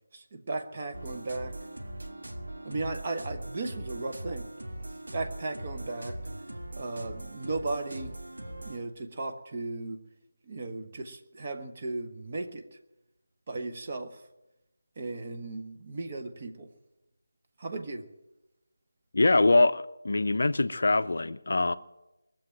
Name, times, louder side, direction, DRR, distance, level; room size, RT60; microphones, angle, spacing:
voice 1, 0.1-1.6 2.6-4.5 5.1-6.2 6.7-8.1 8.6-10.0 10.4-12.8 13.5-14.2 15.0-16.7 17.6-18.1, right 3 dB, 30° right, 1.2 m, -36 dB
sound 1, 0.9-8.8, right 1 dB, 60° right, 1.8 m, -40 dB
voice 2, 19.1-21.7, left 2 dB, 50° left, 0.5 m, -23 dB
21.0 x 7.5 x 9.1 m
figure-of-eight pair, 160°, 0 cm